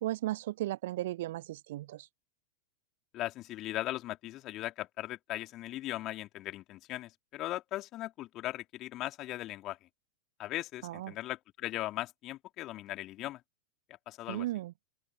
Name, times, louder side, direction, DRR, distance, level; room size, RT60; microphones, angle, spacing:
voice 1, 0.0-2.1 10.8-11.1 14.3-14.7, right 15 dB, 55° right, 0.7 m, -35 dB
voice 2, 3.1-9.8 10.4-13.4 14.1-14.5, left 15 dB, 35° left, 2.9 m, -38 dB
open air
figure-of-eight pair, 90°, 0 cm